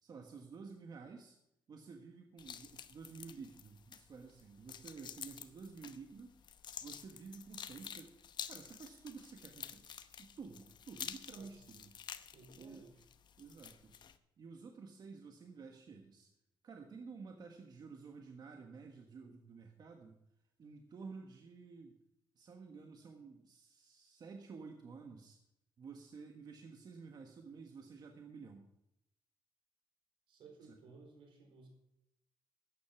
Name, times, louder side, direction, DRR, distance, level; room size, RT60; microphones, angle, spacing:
voice 1, 0.0-1.4 1.7-6.4 6.8-8.1 8.4-11.9 12.6-12.9 13.4-13.9 14.4-16.3 16.6-20.2 20.6-21.9 22.3-25.4 25.8-28.7 30.7-30.8, right 5 dB, 50° right, 3 dB, 1.5 m, -52 dB
sound 1, 2.4-14.2, left 8 dB, 60° left, 0.9 m, -50 dB
voice 2, 11.3-11.6 12.3-12.9 30.3-31.7, right 3 dB, 80° right, 3 dB, 4.5 m, -58 dB
13.5 x 9.5 x 5.9 m, 0.83 s
cardioid pair, 125°, 9 cm